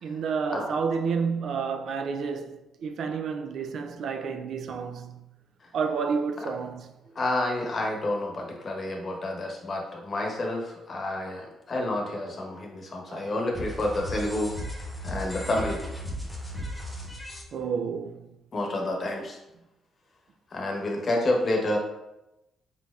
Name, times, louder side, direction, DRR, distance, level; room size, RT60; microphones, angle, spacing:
voice 1, 0.0-5.2 5.7-6.9 13.1-13.4 17.5-18.3, right 5 dB, 65° right, 0.4 m, -30 dB
voice 2, 7.1-14.5 15.0-15.8 18.5-19.4 20.5-21.8, left 1 dB, 40° left, 1.0 m, -29 dB
sound 1, 13.5-17.4, equal, 15° left, 1.0 m, -36 dB
4.3 x 4.1 x 2.4 m
cardioid pair, 90°, 0 cm